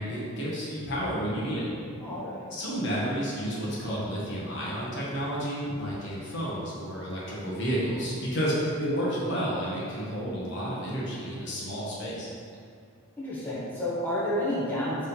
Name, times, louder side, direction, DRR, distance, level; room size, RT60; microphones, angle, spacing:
voice 1, 0.0-1.7 2.5-12.3, equal, 55° left, -6 dB, 1.5 m, -31 dB
voice 2, 2.0-2.4 13.2-15.1, left 1 dB, 10° left, -9 dB, 0.9 m, -30 dB
5.2 x 3.7 x 5.5 m, 2.3 s
head